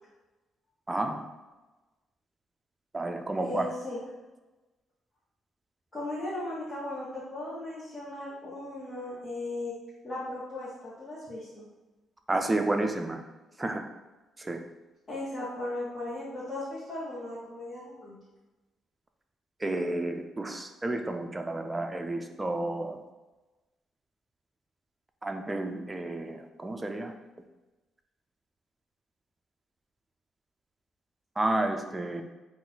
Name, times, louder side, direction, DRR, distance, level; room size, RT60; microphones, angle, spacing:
voice 1, 0.9-1.2 2.9-3.7 12.3-13.2 13.6-13.9 14.4-14.6 19.6-23.0 25.2-27.1 31.4-32.2, right 2 dB, 20° right, 5 dB, 0.4 m, -31 dB
voice 2, 3.3-4.0 5.9-9.7 10.0-11.6 15.1-18.2, left 2 dB, 30° left, -10 dB, 1.3 m, -37 dB
3.9 x 2.5 x 3.9 m, 1.1 s
cardioid pair, 90°, 0 cm